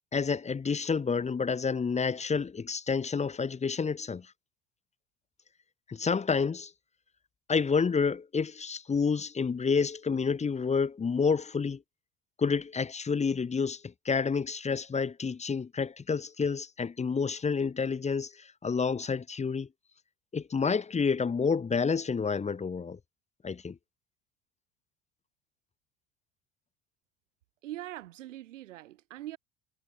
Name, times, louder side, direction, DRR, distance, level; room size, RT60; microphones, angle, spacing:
voice 1, 0.1-4.3 5.9-6.7 7.5-11.8 12.4-19.7 20.3-23.0 23.4-23.8, left 5 dB, 20° left, 1.0 m, -29 dB
voice 2, 27.6-29.4, right 14 dB, 80° right, 0.8 m, -42 dB
hypercardioid pair, 70°, 37 cm